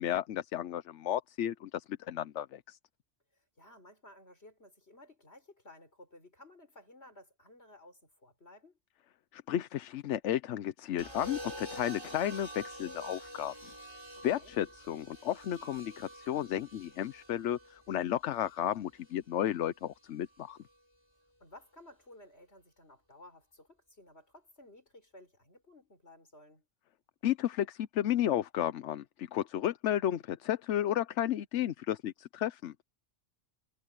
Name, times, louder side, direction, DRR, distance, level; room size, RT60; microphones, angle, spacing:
voice 1, 0.0-2.8 9.3-13.5 14.2-20.6 27.2-32.7, left 11 dB, 85° left, 1.0 m, -33 dB
voice 2, 3.3-8.8 14.2-14.6 21.4-26.7, left 1 dB, 65° left, 6.6 m, -56 dB
sound 1, 11.0-19.1 20.4-20.7, equal, 20° right, 6.4 m, -47 dB
omnidirectional pair, 1.2 m